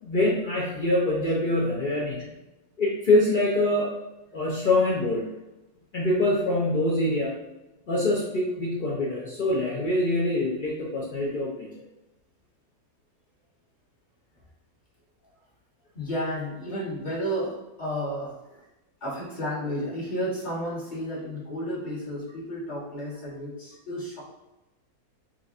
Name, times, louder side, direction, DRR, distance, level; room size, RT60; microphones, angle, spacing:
voice 1, 0.0-2.3 2.8-3.9 4.3-5.3 5.9-7.3 7.9-11.7, left 1 dB, 70° left, -4 dB, 0.4 m, -24 dB
voice 2, 15.9-18.3 19.0-24.2, equal, 30° left, -8 dB, 1.3 m, -32 dB
4.7 x 2.5 x 2.4 m, 1.0 s
omnidirectional pair, 1.7 m